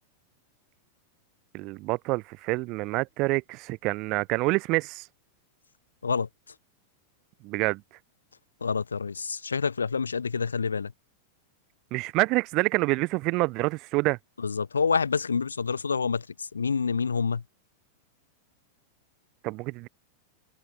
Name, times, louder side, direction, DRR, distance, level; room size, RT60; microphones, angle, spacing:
voice 1, 1.5-5.0 7.4-7.8 11.9-14.2 19.4-19.9, right 23 dB, 40° right, 3.4 m, -27 dB
voice 2, 8.6-10.9 14.4-17.4, left 5 dB, 75° left, 3.2 m, -27 dB
open air
figure-of-eight pair, 90°, 0 cm